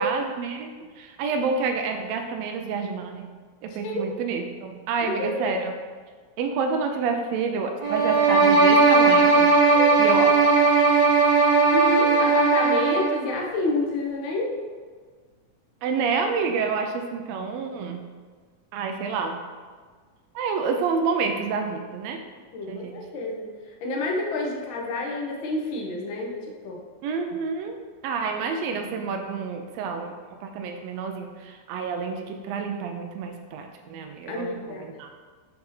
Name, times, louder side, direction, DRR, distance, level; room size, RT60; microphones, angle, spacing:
voice 1, 0.0-3.3 3.6-5.7 6.4-9.5 10.0-10.3 10.8-10.9 15.8-18.0 18.7-19.4 20.3-22.2 22.7-22.9 27.0-27.8 28.0-35.1, right 5 dB, 85° right, 4 dB, 1.5 m, -28 dB
voice 2, 3.7-4.0 5.0-5.5 9.6-9.9 11.7-14.5 22.5-23.4 23.8-26.8 34.3-34.8, left 2 dB, 75° left, -1 dB, 1.1 m, -29 dB
sound 1, 7.8-13.2, right 4 dB, 65° right, 1.0 m, -18 dB
6.6 x 2.8 x 5.5 m, 1.5 s
omnidirectional pair, 3.5 m